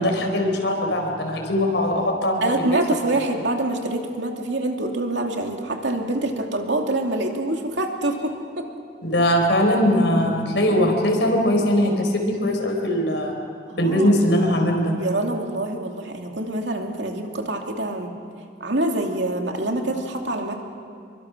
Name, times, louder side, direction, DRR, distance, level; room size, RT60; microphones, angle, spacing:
voice 1, 0.0-2.4 9.0-13.3 13.8-14.9, left 1 dB, 80° left, 2 dB, 4.6 m, -20 dB
voice 2, 2.4-8.7 13.7-14.2 15.0-18.1 18.6-20.6, right 2 dB, 85° right, 2 dB, 2.6 m, -25 dB
27.5 x 23.5 x 6.2 m, 2.2 s
head